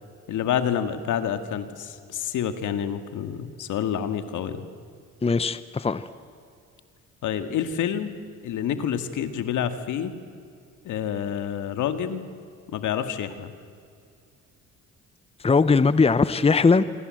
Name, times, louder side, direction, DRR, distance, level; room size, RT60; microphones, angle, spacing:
voice 1, 0.3-4.6 7.2-8.1 8.4-10.2 10.8-12.3 12.7-13.5, left 9 dB, 80° left, 9 dB, 2.0 m, -28 dB
voice 2, 5.2-6.1 15.4-16.8, left 4 dB, 20° left, 14 dB, 0.9 m, -20 dB
26.5 x 25.0 x 7.8 m, 2.3 s
cardioid pair, 90°, 30 cm